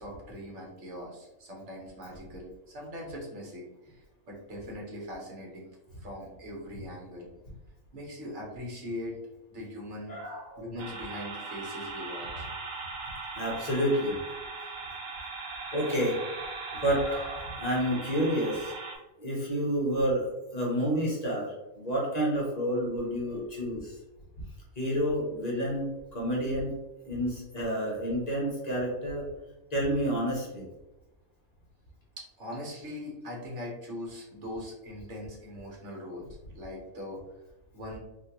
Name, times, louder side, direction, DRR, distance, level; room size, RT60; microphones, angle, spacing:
voice 1, 0.0-5.7 6.0-7.3 7.9-9.2 9.5-10.2 10.6-12.4 32.2-36.3 36.5-37.2 37.7-38.0, left 1 dB, 60° right, -3 dB, 1.3 m, -41 dB
voice 2, 10.1-10.6 13.3-14.2 15.7-16.2 16.7-18.7 19.2-23.9 24.8-26.7 27.0-29.2 29.7-30.7, equal, 35° left, -4 dB, 0.8 m, -29 dB
sound 1, 10.8-19.0, right 3 dB, 75° right, 1.2 m, -39 dB
3.5 x 2.5 x 2.9 m, 1.0 s
omnidirectional pair, 1.5 m